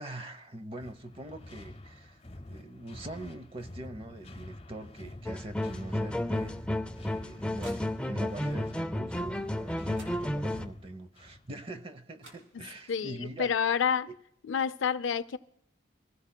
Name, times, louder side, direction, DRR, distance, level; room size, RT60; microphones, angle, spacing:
voice 1, 0.0-2.2 2.5-6.9 7.1-13.5, right 1 dB, 30° right, 0.7 m, -43 dB
sound 1, 0.8-11.5, left 1 dB, 30° left, 1.0 m, -48 dB
sound 2, 5.3-10.7, left 1 dB, 5° left, 0.4 m, -32 dB
sound 3, 6.8-8.4 9.5-9.6 9.9-10.8 11.9-12.0 12.2-13.1, right 2 dB, 85° right, 3.0 m, -56 dB
voice 2, 12.9-14.1 14.4-15.4, left 7 dB, 70° left, 0.4 m, -29 dB
25.5 x 15.5 x 2.2 m
head